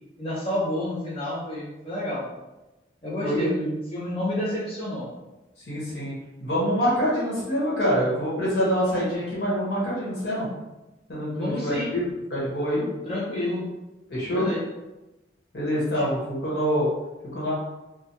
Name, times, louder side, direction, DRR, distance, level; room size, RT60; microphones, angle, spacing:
voice 1, 0.2-2.3 3.0-5.1 11.4-11.9 13.0-13.6 14.3-14.6 15.9-16.0, left 1 dB, 30° left, -8 dB, 0.6 m, -29 dB
voice 2, 5.7-6.1 6.4-10.5 11.1-12.8 14.1-14.5 15.5-16.9 17.3-17.5, equal, 60° left, -7 dB, 1.2 m, -25 dB
3.3 x 2.2 x 2.8 m, 1.0 s
head